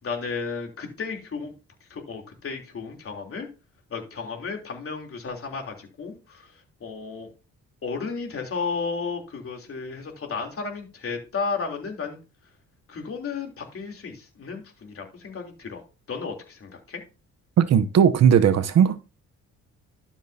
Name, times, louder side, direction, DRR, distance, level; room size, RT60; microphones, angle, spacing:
voice 1, 0.0-1.5 1.9-3.5 3.9-7.3 7.8-12.2 12.9-15.8 16.1-17.0, left 5 dB, 50° left, 3.3 m, -33 dB
voice 2, 17.6-19.0, right 8 dB, 60° right, 0.9 m, -17 dB
12.0 x 7.2 x 2.8 m
cardioid pair, 90°, 30 cm